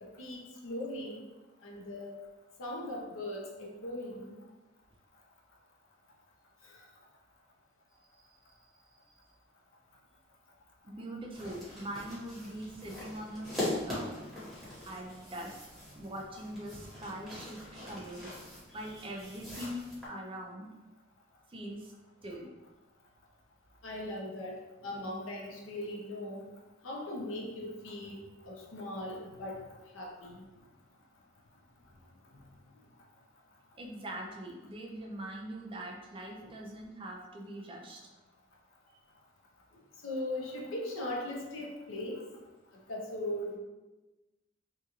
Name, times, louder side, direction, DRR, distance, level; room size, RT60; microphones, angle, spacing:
voice 1, 0.0-1.2 1.6-2.2 2.6-4.3 23.8-26.5 26.8-28.2 28.5-29.6 29.9-30.4 40.0-42.2 42.9-43.6, left 1 dB, 80° left, -1 dB, 0.6 m, -39 dB
voice 2, 10.8-14.1 14.9-15.6 15.9-18.3 18.7-20.7 21.5-21.9 22.2-22.5 33.7-38.0 40.6-40.7, right 1 dB, 25° right, 0 dB, 0.4 m, -42 dB
sound 1, 11.3-20.1, left 1 dB, ahead, 1.0 m, -42 dB
2.8 x 2.4 x 2.9 m, 1.1 s
head